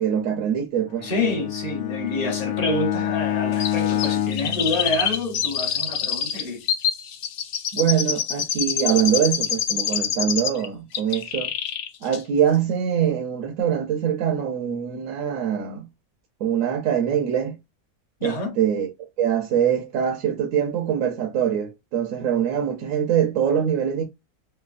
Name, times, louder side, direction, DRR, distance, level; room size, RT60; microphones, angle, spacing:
voice 1, 0.0-1.1 7.7-11.5 12.0-15.9 16.4-17.6 18.2-18.9 19.2-24.0, right 9 dB, 65° right, 1.0 m, -23 dB
Bowed string instrument, 0.9-5.5, left 11 dB, 85° left, 1.1 m, -27 dB
voice 2, 1.0-6.6 18.2-18.6, left 2 dB, 35° left, 0.8 m, -27 dB
Chirp tweet, 3.6-10.7 10.9-11.9 12.1-12.2, left 8 dB, 70° left, 0.6 m, -26 dB
3.2 x 2.7 x 2.5 m
omnidirectional pair, 1.6 m